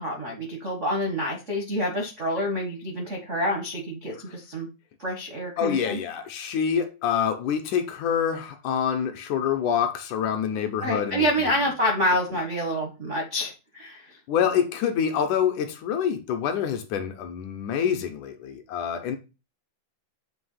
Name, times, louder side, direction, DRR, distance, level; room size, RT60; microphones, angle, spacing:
voice 1, 0.0-4.7 5.0-6.0 10.8-14.2, equal, 65° right, 0.7 m, -27 dB
voice 2, 5.6-11.5 14.3-19.2, left 8 dB, 75° left, 2.1 m, -26 dB
7.8 x 2.9 x 5.6 m
omnidirectional pair, 3.9 m